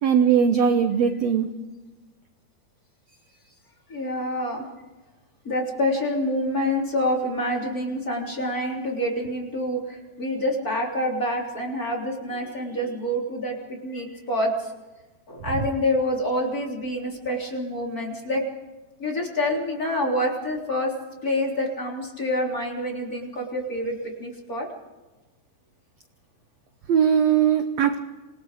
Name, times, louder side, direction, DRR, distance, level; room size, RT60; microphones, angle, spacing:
voice 1, 0.0-1.5 26.9-28.0, right 7 dB, 75° right, 7 dB, 1.5 m, -20 dB
voice 2, 3.9-4.7 5.4-13.6 13.8-14.7 15.3-18.4 19.0-20.9 21.2-24.7, left 1 dB, 25° left, 0 dB, 3.6 m, -27 dB
26.5 x 20.5 x 5.1 m, 1.2 s
omnidirectional pair, 4.5 m